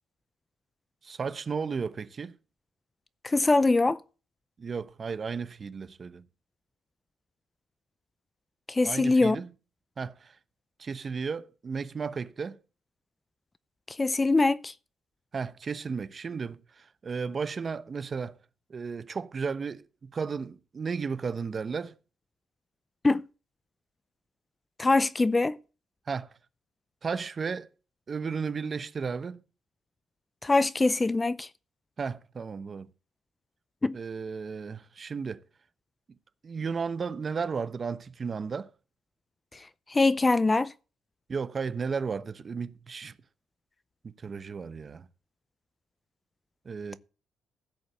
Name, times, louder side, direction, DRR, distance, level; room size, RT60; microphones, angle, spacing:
voice 1, 1.0-2.3 4.6-6.3 8.8-9.5 10.0-10.4 10.8-12.6 15.3-18.4 18.7-22.0 26.1-26.3 27.0-27.7 28.1-29.4 32.0-32.9 33.9-35.4 36.4-38.7 41.3-43.1 44.0-45.1 46.6-47.0, right 5 dB, 40° right, 0.9 m, -34 dB
voice 2, 3.2-4.0 8.7-9.4 14.0-14.7 23.0-23.2 24.8-25.6 30.4-31.5 33.8-34.0 39.9-40.7, left 3 dB, 20° left, 0.5 m, -23 dB
15.5 x 5.3 x 7.1 m
cardioid pair, 90°, 0 cm